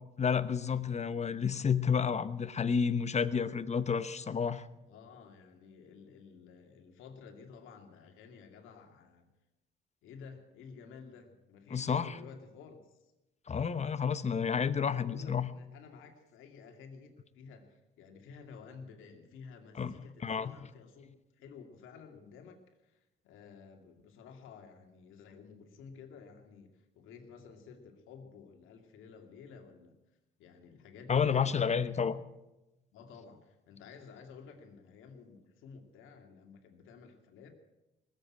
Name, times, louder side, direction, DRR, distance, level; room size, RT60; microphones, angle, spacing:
voice 1, 0.2-4.7 11.7-12.1 13.5-15.5 19.8-20.0 20.2-20.5 31.1-32.2, left 6 dB, 35° left, 13 dB, 0.9 m, -30 dB
voice 2, 4.9-9.3 10.0-13.1 14.9-30.0 30.4-32.1 32.9-37.5, left 5 dB, 90° left, 4 dB, 2.4 m, -52 dB
20.0 x 8.1 x 8.8 m, 0.99 s
cardioid pair, 90°, 20 cm